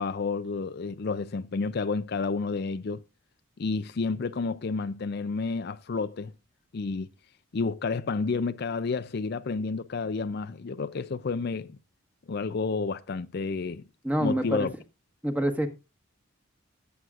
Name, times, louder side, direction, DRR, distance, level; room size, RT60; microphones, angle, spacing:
voice 1, 0.0-3.0 3.6-6.3 6.7-7.1 7.5-11.8 12.3-13.8 14.2-14.7, left 4 dB, 50° left, 0.5 m, -30 dB
voice 2, 14.0-14.7 15.2-15.7, right 1 dB, 10° right, 1.4 m, -26 dB
18.0 x 7.9 x 2.5 m
head